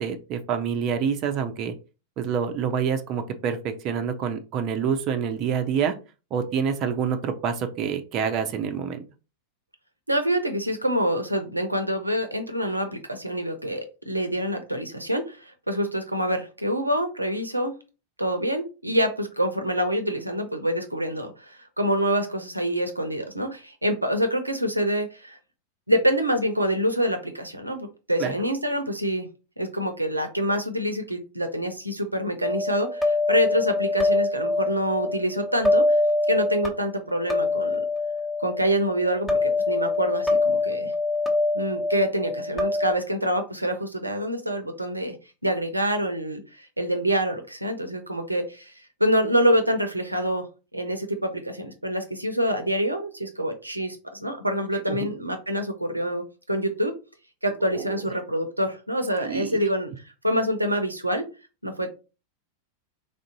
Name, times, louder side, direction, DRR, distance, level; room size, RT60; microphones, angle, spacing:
voice 1, 0.0-1.7 2.2-5.9 6.3-9.0 28.2-28.4 54.9-55.1 57.7-58.1 59.2-59.6, right 7 dB, 35° right, 7 dB, 0.5 m, -27 dB
voice 2, 10.1-17.8 18.2-25.4 25.9-29.3 29.6-36.0 36.3-37.8 38.4-40.9 41.5-45.1 45.4-50.5 50.7-56.9 57.4-59.9 60.2-61.3 61.6-62.0, equal, 85° right, 7 dB, 0.6 m, -26 dB
sound 1, 32.4-43.0, left 2 dB, 5° left, 1.0 m, -25 dB
3.4 x 2.6 x 3.9 m, 0.32 s
figure-of-eight pair, 90°, 0 cm